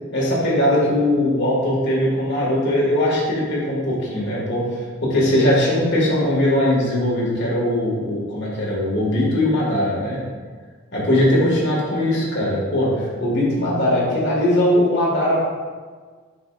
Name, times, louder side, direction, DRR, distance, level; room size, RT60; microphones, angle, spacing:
voice 1, 0.1-10.2 10.9-15.5, left 1 dB, 50° left, -4 dB, 1.9 m, -20 dB
8.0 x 5.4 x 2.5 m, 1.5 s
head